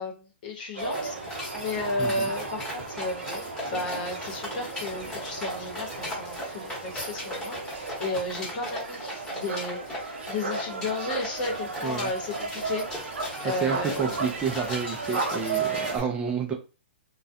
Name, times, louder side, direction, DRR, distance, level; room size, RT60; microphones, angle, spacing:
voice 1, 0.0-13.2 13.4-14.3, left 2 dB, 50° left, 1 dB, 0.9 m, -34 dB
sound 1, 0.7-15.9, right 4 dB, 85° right, 0.5 m, -35 dB
sound 2, 0.8-16.0, left 1 dB, 10° left, 1.0 m, -38 dB
voice 2, 2.0-2.3 11.8-12.1 13.4-16.5, right 6 dB, 15° right, 1 dB, 0.4 m, -30 dB
2.3 x 2.1 x 2.6 m, 0.32 s
hypercardioid pair, 135°, 6 cm